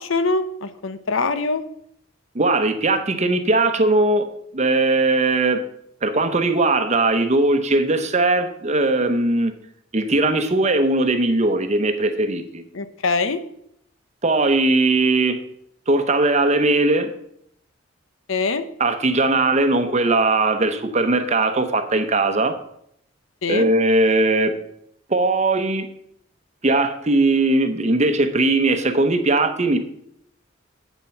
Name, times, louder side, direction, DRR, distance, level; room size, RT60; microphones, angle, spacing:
voice 1, 0.0-1.6 12.7-13.4 18.3-18.7 23.4-23.7, left 3 dB, 85° left, 11 dB, 0.8 m, -23 dB
voice 2, 2.3-4.3 4.5-5.6 6.0-9.5 9.9-12.6 14.2-15.4 15.9-17.1 18.8-22.5 23.5-24.5 25.1-25.9 26.6-29.8, right 2 dB, 35° right, 8 dB, 0.9 m, -19 dB
8.3 x 7.4 x 5.8 m, 0.72 s
head